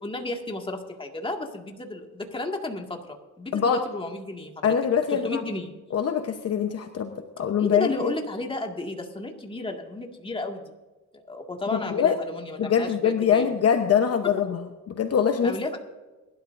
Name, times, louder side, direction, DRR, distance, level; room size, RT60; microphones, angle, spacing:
voice 1, 0.0-4.7 5.2-5.7 7.6-10.6 11.3-13.5 15.4-15.8, left 2 dB, 15° left, 2 dB, 2.0 m, -33 dB
voice 2, 3.5-3.8 4.6-5.4 5.9-8.1 11.7-12.2 12.6-14.6 14.9-15.6, left 7 dB, 55° left, 6 dB, 1.0 m, -23 dB
22.0 x 12.0 x 2.6 m, 1.2 s
cardioid pair, 90°, 30 cm